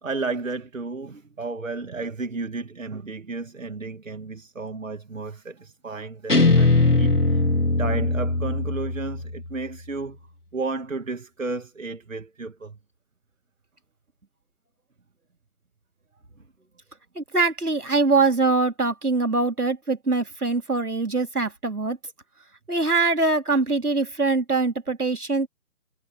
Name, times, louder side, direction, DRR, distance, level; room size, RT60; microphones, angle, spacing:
voice 1, 0.0-7.4 7.8-10.2 10.5-12.8, right 3 dB, 55° right, 2.2 m, -33 dB
Guitar, 6.3-9.5, left 3 dB, 85° left, 2.4 m, -20 dB
voice 2, 17.2-22.0 22.7-25.5, right 3 dB, 75° right, 3.8 m, -23 dB
figure-of-eight pair, 150°, 45 cm